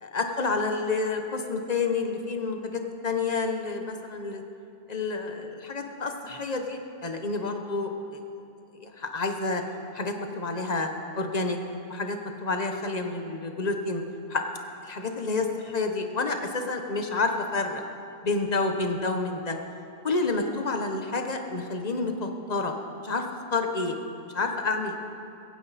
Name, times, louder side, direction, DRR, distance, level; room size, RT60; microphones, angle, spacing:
voice 1, 0.0-4.4 4.9-7.9 8.7-9.6 9.9-10.9 11.1-11.6 11.9-14.0 14.3-14.4 14.8-17.8 18.2-19.6 20.0-22.7 23.0-23.2 23.5-24.0 24.2-25.1, left 3 dB, 40° left, 4 dB, 1.2 m, -29 dB
16.0 x 16.0 x 4.2 m, 2.7 s
omnidirectional pair, 1.1 m